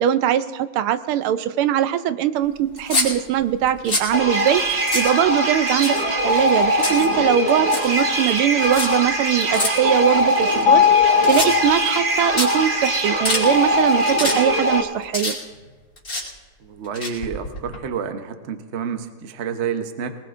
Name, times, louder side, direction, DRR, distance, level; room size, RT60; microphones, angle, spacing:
voice 1, 0.0-6.0 6.2-15.4, right 10 dB, 80° right, 12 dB, 1.5 m, -21 dB
sound 1, 2.7-3.1 3.6-4.1 4.6-4.7 4.9-5.1 5.7-6.2 6.5-7.1 7.5-7.9 8.6-8.9 9.5-9.7 10.4-11.0 11.2-11.7 12.1-12.2 12.4-12.5 13.0-13.4 13.9-14.3 14.6-15.7 16.0-16.2 16.8-17.8, left 2 dB, 40° left, 3.7 m, -25 dB
sound 2, 4.1-14.8, right 1 dB, 35° right, 1.2 m, -21 dB
Mallet percussion, 10.7-12.6, left 9 dB, 70° left, 1.0 m, -19 dB
voice 2, 16.6-20.2, right 7 dB, 55° right, 7 dB, 0.7 m, -29 dB
22.5 x 19.5 x 2.5 m, 1.4 s
omnidirectional pair, 2.4 m